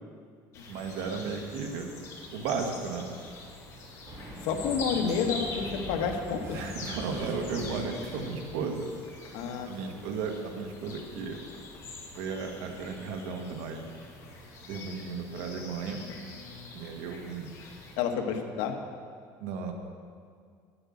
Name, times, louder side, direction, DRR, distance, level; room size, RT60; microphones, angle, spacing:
sound 1, 0.5-18.0, left 3 dB, 40° left, 2.2 m, -44 dB
voice 1, 0.7-1.9 2.3-3.1 6.5-8.8 9.6-11.4 12.2-13.9 14.7-16.0 16.7-17.5 19.4-19.7, right 5 dB, 80° right, 3 dB, 1.4 m, -34 dB
sound 2, 4.0-9.0, equal, 35° right, 2.6 m, -42 dB
voice 2, 4.4-6.6 9.3-10.0 16.0-16.7 18.0-18.7, left 6 dB, 75° left, 4 dB, 1.3 m, -31 dB
10.0 x 7.8 x 7.8 m, 2.2 s
cardioid pair, 155°, 8 cm